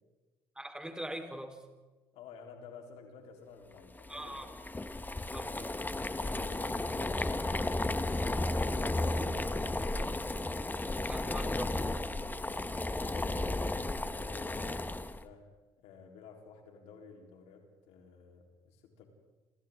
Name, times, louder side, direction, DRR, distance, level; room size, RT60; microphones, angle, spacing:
voice 1, 0.6-1.6 4.1-4.5 5.3-5.7 11.0-11.8, right 1 dB, 5° right, 4 dB, 4.2 m, -41 dB
voice 2, 2.1-4.5 5.5-5.7 6.1-7.8 8.6-10.2 13.1-15.5 15.8-19.0, left 5 dB, 70° left, 2 dB, 4.0 m, -53 dB
Boiling, 4.0-15.2, left 2 dB, 15° left, 1.5 m, -34 dB
27.5 x 27.5 x 3.8 m, 1.2 s
hypercardioid pair, 55°, 11 cm